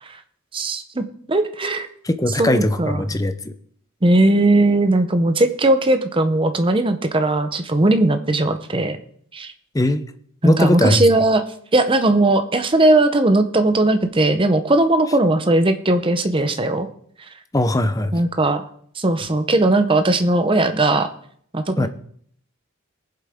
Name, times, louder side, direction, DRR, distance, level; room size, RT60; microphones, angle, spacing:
voice 1, 0.5-1.9 2.4-3.0 4.0-9.0 9.3-9.5 10.4-11.4 11.7-16.9 18.1-18.6 19.0-21.1 21.5-21.9, right 2 dB, 25° right, 9 dB, 0.7 m, -18 dB
voice 2, 2.0-3.5 9.7-10.0 10.4-11.0 17.5-18.1 21.8-21.9, left 1 dB, 15° left, 9 dB, 0.6 m, -19 dB
19.0 x 7.6 x 3.6 m, 0.63 s
head